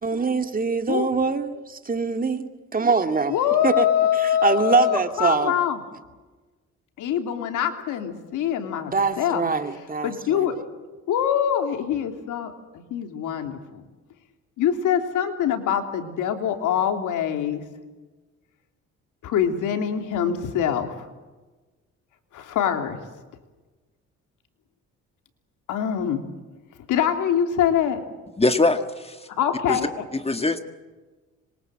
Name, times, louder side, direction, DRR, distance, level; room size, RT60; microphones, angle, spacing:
voice 1, 0.0-3.3 3.6-3.9 4.1-5.6 8.9-10.5, right 4 dB, 30° right, 2.3 m, -24 dB
voice 2, 3.3-5.8 7.0-9.5 10.0-10.5 11.1-13.8 14.6-17.6 19.2-21.1 22.3-23.0 25.7-26.2 26.9-28.0 29.4-29.9, left 9 dB, 85° left, 3.2 m, -24 dB
voice 3, 28.4-29.3 29.7-29.8 30.1-30.6, left 2 dB, 20° left, 1.8 m, -22 dB
26.5 x 23.5 x 7.7 m
cardioid pair, 90°, 30 cm